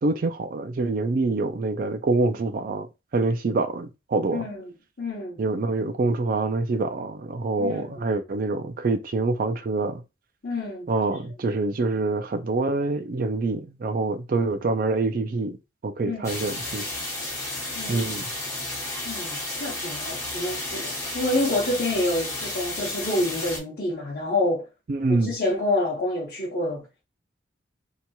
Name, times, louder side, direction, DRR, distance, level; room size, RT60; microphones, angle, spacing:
voice 1, 0.0-4.5 5.4-10.0 10.9-15.6 15.8-17.0 17.9-18.3 24.9-25.3, right 3 dB, 45° right, 0.3 m, -26 dB
voice 2, 4.3-4.6 5.0-5.4 7.6-8.0 10.4-10.9 16.0-16.3 17.7-18.1 19.1-24.7 25.1-27.0, left 1 dB, 55° left, 0.8 m, -28 dB
sound 1, 16.2-23.6, left 2 dB, 15° left, 0.9 m, -32 dB
2.8 x 2.8 x 2.2 m
head